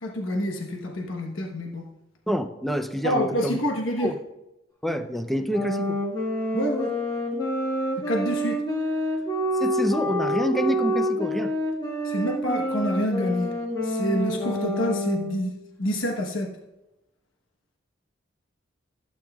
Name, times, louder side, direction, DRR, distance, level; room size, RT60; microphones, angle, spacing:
voice 1, 0.0-1.8 3.0-4.1 6.5-6.9 8.0-8.6 12.0-13.5 13.8-16.5, equal, 85° left, 1 dB, 1.1 m, -27 dB
voice 2, 2.3-3.6 4.0-4.2 4.8-6.0 9.5-11.5, equal, ahead, 8 dB, 0.5 m, -27 dB
sound 1, 5.5-15.5, equal, 20° left, 2.0 m, -27 dB
15.5 x 8.8 x 2.3 m, 0.94 s
head